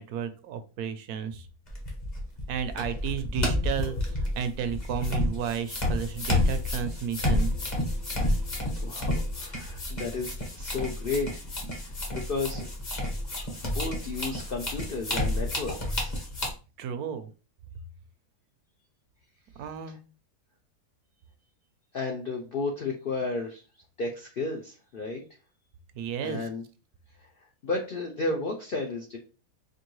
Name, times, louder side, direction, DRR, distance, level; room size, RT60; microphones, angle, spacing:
voice 1, 0.0-1.5 2.5-7.5 16.8-17.3 19.6-20.0 26.0-26.4, right 7 dB, 75° right, 9 dB, 1.1 m, -33 dB
sound 1, 1.7-16.5, left 1 dB, 35° left, 1.0 m, -30 dB
voice 2, 8.7-11.5 11.8-12.7 13.3-16.2 21.9-23.6 24.0-25.2 26.2-26.6 27.2-29.2, left 3 dB, 65° left, 1 dB, 0.5 m, -33 dB
4.5 x 2.7 x 3.0 m, 0.34 s
omnidirectional pair, 1.7 m